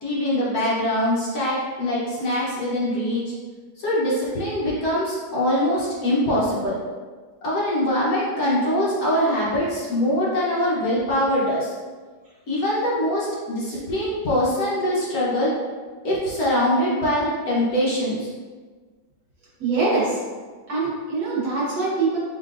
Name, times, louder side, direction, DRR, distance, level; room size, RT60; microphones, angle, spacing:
voice 1, 0.0-3.2 3.8-6.7 7.4-11.7 12.5-15.5 16.0-18.3, left 1 dB, 60° left, -7 dB, 1.3 m, -23 dB
voice 2, 19.6-20.2 20.7-22.2, right 3 dB, 70° right, -6 dB, 1.8 m, -23 dB
4.3 x 3.9 x 2.5 m, 1.4 s
omnidirectional pair, 2.0 m